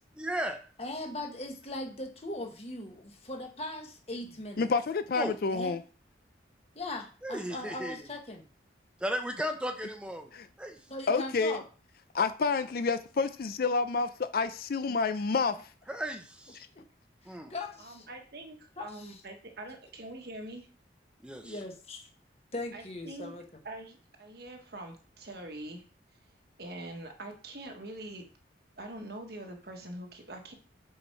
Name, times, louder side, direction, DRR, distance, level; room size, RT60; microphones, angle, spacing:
voice 1, 0.1-0.6 5.1-5.3 7.2-8.1 9.0-10.3 10.6-10.8 15.9-16.6 17.3-17.5 21.2-21.5, equal, 5° right, 0.8 m, -35 dB
voice 2, 0.8-4.7 5.5-5.8 6.7-8.4 10.9-11.6 14.9-15.0 17.2-18.1 18.8-19.2 21.4-22.1 22.5-23.4, left 2 dB, 35° left, 1.3 m, -39 dB
voice 3, 4.6-5.8 10.3-10.5 11.1-11.6 12.1-15.6, left 4 dB, 50° left, 0.4 m, -29 dB
voice 4, 17.8-20.7 22.7-23.3 23.6-25.9 26.6-28.3 28.8-30.5, right 1 dB, 55° right, 1.3 m, -44 dB
7.1 x 4.3 x 4.5 m
head